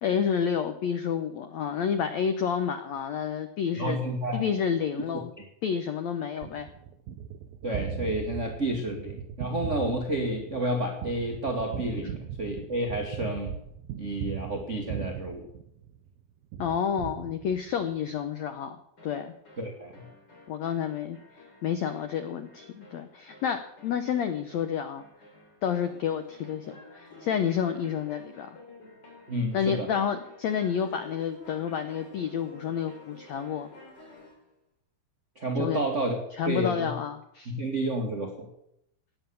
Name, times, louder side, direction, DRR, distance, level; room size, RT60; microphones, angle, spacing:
voice 1, 0.0-4.0 4.3-5.3 5.6-6.7 16.6-19.3 20.5-21.2 21.6-25.0 25.6-28.6 29.5-33.7 35.5-35.8 36.4-37.5, left 8 dB, 85° left, 9 dB, 1.5 m, -29 dB
voice 2, 3.7-4.5 5.4-5.5 7.6-13.6 14.0-15.5 19.6-20.0 29.3-29.9 35.3-36.2 36.4-36.9 37.4-38.5, right 1 dB, 45° right, 2 dB, 1.0 m, -30 dB
Gunshot gunfire, 6.4-16.1 16.5-17.9, right 8 dB, 75° right, 2.5 m, -39 dB
sound 1, 19.0-34.4, left 2 dB, 30° left, 4.3 m, -51 dB
17.5 x 9.2 x 7.0 m, 0.78 s
omnidirectional pair, 4.3 m